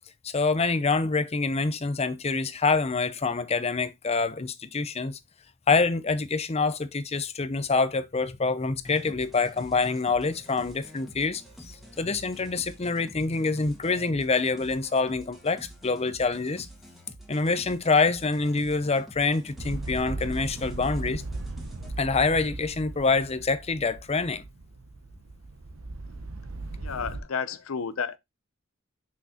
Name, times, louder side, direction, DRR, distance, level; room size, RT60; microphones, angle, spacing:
voice 1, 0.2-5.2 5.7-16.7 17.3-21.2 22.0-24.4, left 4 dB, 30° left, 0.6 m, -26 dB
sound 1, 8.8-21.9, equal, ahead, 1.6 m, -49 dB
sound 2, 19.6-27.2, right 2 dB, 75° right, 0.9 m, -38 dB
voice 2, 26.8-28.2, left 6 dB, 80° left, 0.6 m, -31 dB
6.3 x 5.8 x 2.8 m
head